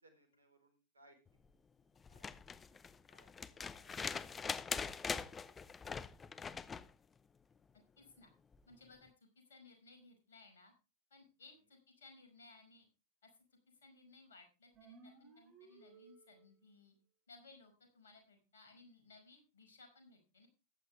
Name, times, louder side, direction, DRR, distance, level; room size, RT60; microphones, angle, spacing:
voice 1, 0.0-1.2 2.1-2.3 2.7-4.4 4.8-5.6, right 1 dB, 85° right, 7 dB, 3.9 m, -69 dB
sound 1, 2.0-6.9 8.5-8.6, left 5 dB, 20° left, 0.8 m, -42 dB
voice 2, 8.0-8.3 8.7-10.7 11.1-12.9 13.2-16.9 17.3-20.5, left 3 dB, 75° left, 5 dB, 5.2 m, -61 dB
sound 2, 14.7-16.7, right 4 dB, 40° right, 5.9 m, -61 dB
14.5 x 10.5 x 3.3 m, 0.29 s
hypercardioid pair, 90°, 0 cm